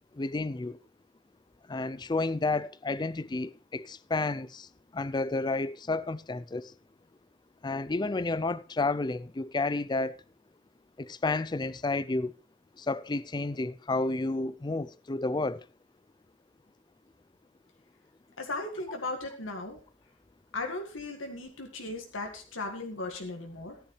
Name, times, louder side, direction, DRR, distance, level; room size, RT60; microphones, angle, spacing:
voice 1, 0.2-0.8 1.7-4.7 4.9-6.7 7.6-10.1 11.0-12.3 12.8-15.6, left 3 dB, 20° left, 0.4 m, -31 dB
voice 2, 18.4-19.8 20.5-23.8, left 2 dB, 85° left, 2.0 m, -37 dB
14.5 x 10.0 x 3.2 m
head